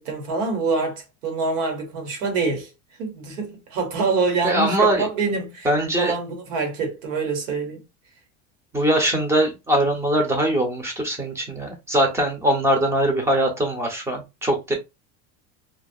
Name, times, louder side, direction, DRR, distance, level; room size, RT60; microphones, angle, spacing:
voice 1, 0.0-2.7 3.0-5.7 6.0-7.8, right 4 dB, 90° right, 1.2 m, -25 dB
voice 2, 4.4-5.1 5.6-6.1 8.7-14.7, right 1 dB, 10° right, 0.5 m, -21 dB
2.4 x 2.2 x 2.6 m
cardioid pair, 160°, 36 cm